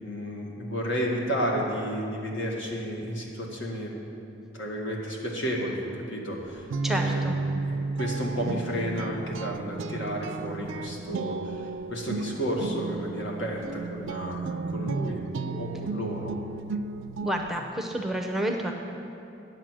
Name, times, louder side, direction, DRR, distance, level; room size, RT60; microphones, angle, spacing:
voice 1, 0.0-3.9 4.5-16.3, equal, 80° left, -2 dB, 1.8 m, -32 dB
Guitar, 6.4-17.6, right 3 dB, 80° right, 0.4 m, -33 dB
voice 2, 6.8-7.4 17.2-18.7, right 1 dB, ahead, 2 dB, 0.5 m, -29 dB
10.0 x 8.1 x 6.2 m, 2.7 s
head